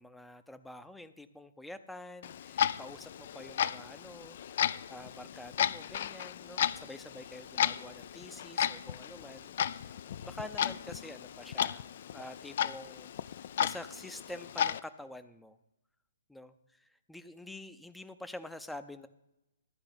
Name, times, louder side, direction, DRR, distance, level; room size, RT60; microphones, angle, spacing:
voice 1, 0.0-10.0 10.2-11.9 12.1-13.1 13.4-15.6 16.3-19.1, left 1 dB, 5° left, 10 dB, 0.6 m, -47 dB
Clock, 2.2-14.8, left 9 dB, 50° left, 0.4 m, -34 dB
12.5 x 4.8 x 8.7 m, 0.90 s
figure-of-eight pair, 130°, 0 cm